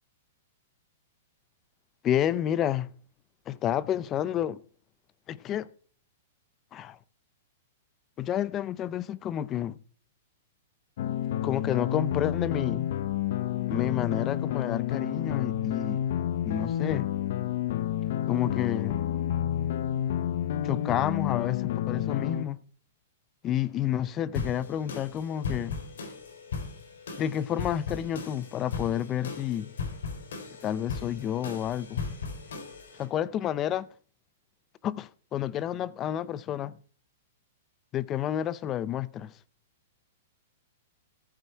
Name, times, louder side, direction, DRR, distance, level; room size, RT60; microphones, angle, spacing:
voice 1, 2.0-2.9 3.5-4.6 5.3-5.7 6.7-7.0 8.2-9.8 11.4-12.9 13.7-16.0 16.4-17.1 18.3-19.0 20.6-22.6 23.4-25.8 27.2-29.7 30.6-32.0 33.0-33.9 34.8-36.8 37.9-39.3, left 11 dB, 25° left, 0.5 m, -30 dB
sound 1, 11.0-22.5, left 11 dB, 60° left, 0.7 m, -29 dB
sound 2, 24.3-33.0, left 5 dB, 80° left, 3.4 m, -37 dB
14.0 x 8.1 x 4.4 m
hypercardioid pair, 150°, 0 cm